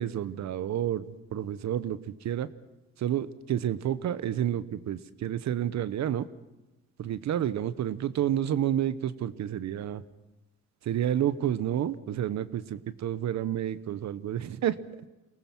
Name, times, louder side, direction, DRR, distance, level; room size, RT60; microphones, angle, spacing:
voice 1, 0.0-2.5 3.0-6.3 7.0-10.0 10.8-14.8, right 10 dB, 65° right, 14 dB, 1.0 m, -30 dB
24.0 x 19.0 x 6.1 m, 1.0 s
cardioid pair, 90°, 30 cm